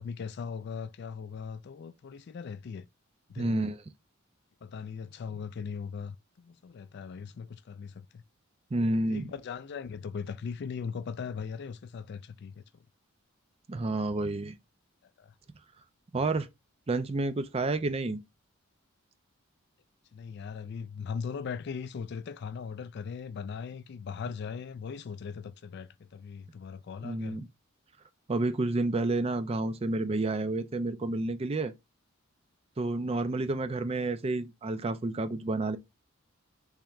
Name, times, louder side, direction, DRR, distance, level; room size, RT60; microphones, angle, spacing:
voice 1, 0.0-2.9 3.3-3.7 4.6-8.2 9.1-12.6 15.2-15.3 20.1-27.4, left 6 dB, 55° left, 0.3 m, -39 dB
voice 2, 3.4-3.8 8.7-9.3 13.7-14.5 16.1-16.5 16.9-18.2 27.0-27.5 28.3-31.7 32.8-35.8, right 2 dB, 30° right, 0.4 m, -30 dB
3.5 x 3.3 x 3.0 m
head